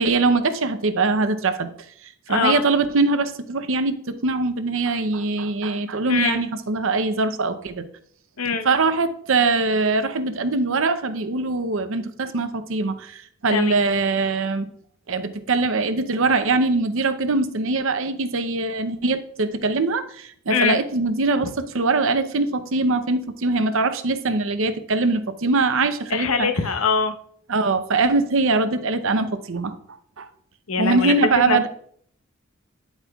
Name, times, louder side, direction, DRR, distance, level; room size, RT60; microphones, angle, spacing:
voice 1, 0.0-1.7 2.3-7.8 8.6-14.7 15.1-26.5 27.5-29.7 30.2-30.3 30.8-31.7, right 3 dB, 65° right, 10 dB, 0.7 m, -22 dB
voice 2, 2.3-2.6 6.1-6.4 8.4-8.7 13.5-13.7 20.5-20.8 26.1-27.2 30.7-31.1 31.5-31.7, left 5 dB, 85° left, 7 dB, 0.8 m, -23 dB
9.7 x 8.0 x 2.4 m, 0.63 s
head